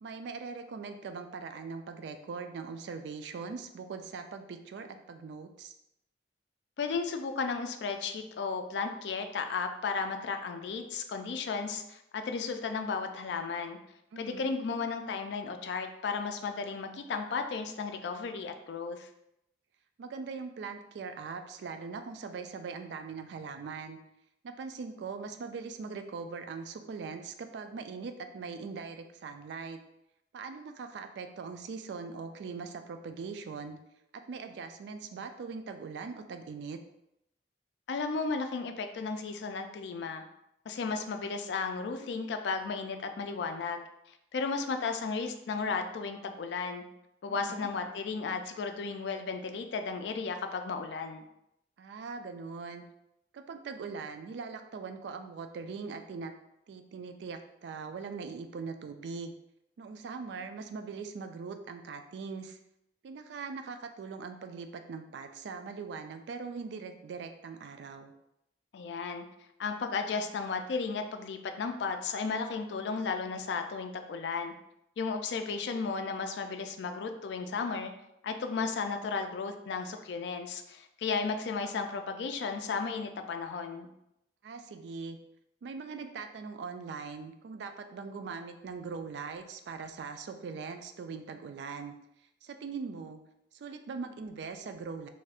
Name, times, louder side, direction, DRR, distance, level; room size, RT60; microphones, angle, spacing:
voice 1, 0.0-5.7 14.1-14.5 20.0-24.0 24.4-29.8 30.3-33.8 34.1-36.8 47.3-47.7 51.8-52.8 53.3-56.3 56.7-59.3 59.8-62.6 63.0-68.1 84.4-85.2 85.6-91.9 92.4-93.2 93.5-95.1, right 5 dB, 70° right, 7 dB, 0.3 m, -41 dB
voice 2, 6.8-13.8 14.2-19.1 37.9-40.2 40.7-43.8 44.3-46.8 47.2-51.2 68.7-69.2 69.6-74.5 75.0-77.9 78.2-83.9, left 4 dB, 70° left, 6 dB, 0.3 m, -34 dB
2.6 x 2.4 x 3.4 m, 0.82 s
head